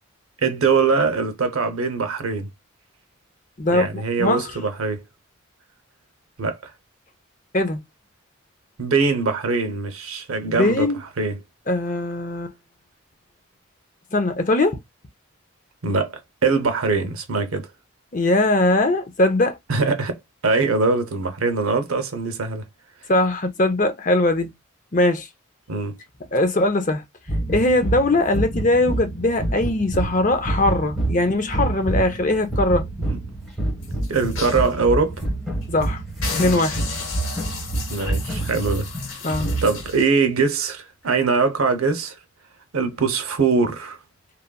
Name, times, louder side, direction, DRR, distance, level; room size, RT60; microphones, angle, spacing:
voice 1, 0.4-2.5 3.7-5.0 6.4-6.7 8.8-10.9 11.2-11.4 15.8-16.1 16.4-17.7 19.7-22.6 25.7-26.0 33.0-33.2 34.1-35.2 37.9-38.9 39.6-42.1 42.7-44.0, right 4 dB, 90° right, 0.7 m, -22 dB
voice 2, 3.6-4.6 7.5-7.8 10.5-11.0 11.7-12.5 14.1-14.8 18.1-19.6 23.1-24.5 24.9-25.3 26.3-27.0 27.5-32.8 35.7-36.0 36.4-36.8 39.2-39.5, left 2 dB, 40° left, 0.6 m, -20 dB
sound 1, 27.3-40.0, right 2 dB, ahead, 1.3 m, -27 dB
sound 2, 33.8-34.7 35.2-35.3 35.6-35.9 36.2-40.1 40.7-40.8, left 5 dB, 75° left, 1.1 m, -33 dB
3.0 x 2.5 x 2.2 m
head